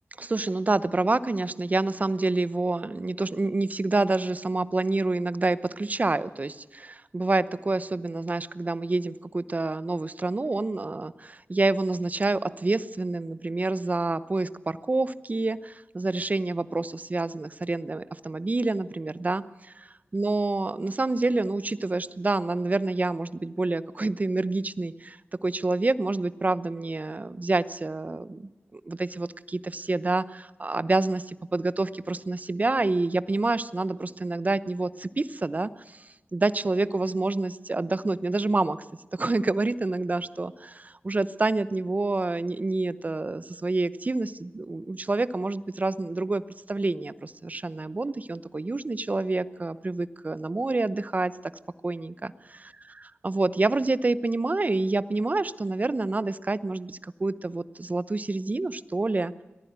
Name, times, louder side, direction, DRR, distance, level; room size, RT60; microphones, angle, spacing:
voice 1, 0.2-19.9 20.1-36.0 36.3-38.8 39.1-46.4 46.7-51.3 51.8-52.7 53.2-59.4, right 2 dB, 35° right, 16 dB, 0.8 m, -28 dB
22.0 x 15.0 x 8.1 m, 1.1 s
wide cardioid pair, 85°, 5 cm